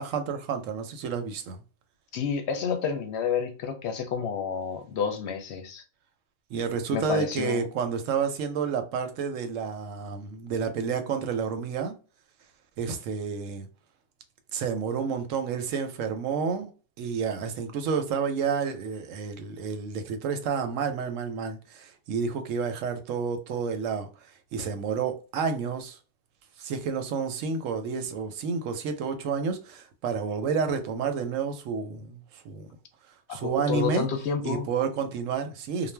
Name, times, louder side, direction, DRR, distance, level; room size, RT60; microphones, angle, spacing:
voice 1, 0.0-1.6 6.5-11.9 12.8-13.7 14.5-16.7 17.0-24.1 24.5-26.0 26.6-32.7 33.3-34.1 34.4-35.9, right 6 dB, 85° right, 1.0 m, -30 dB
voice 2, 2.1-5.8 6.9-7.7 33.3-34.7, left 6 dB, 65° left, 0.8 m, -29 dB
2.4 x 2.1 x 3.2 m
omnidirectional pair, 1.3 m